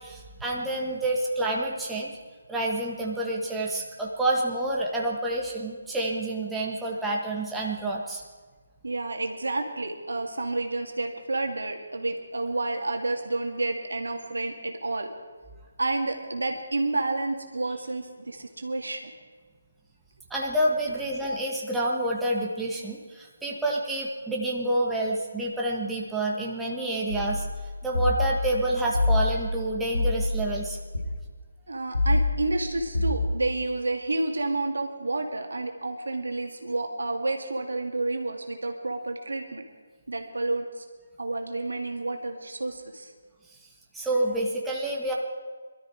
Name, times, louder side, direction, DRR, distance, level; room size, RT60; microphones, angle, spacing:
voice 1, 0.0-2.1 2.5-8.2 20.3-27.5 27.8-30.8 43.9-45.1, right 1 dB, 5° right, -3 dB, 1.8 m, -28 dB
voice 2, 8.8-15.1 15.8-19.1 31.7-39.6 40.1-40.8 41.2-43.1, right 2 dB, 75° right, 4 dB, 2.2 m, -30 dB
sound 1, 27.1-31.0 31.9-33.2, left 2 dB, 85° left, 5.1 m, -27 dB
22.0 x 13.0 x 4.8 m, 1.5 s
figure-of-eight pair, 150°, 0 cm